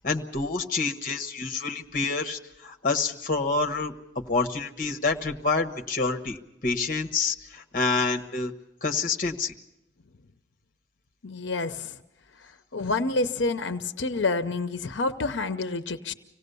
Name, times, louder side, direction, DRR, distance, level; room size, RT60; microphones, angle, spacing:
voice 1, 0.0-8.5 8.8-9.5, left 4 dB, 50° left, 5 dB, 1.2 m, -28 dB
voice 2, 11.2-11.9 12.7-16.1, left 3 dB, 85° left, 9 dB, 0.8 m, -28 dB
25.5 x 18.0 x 6.9 m, 0.89 s
head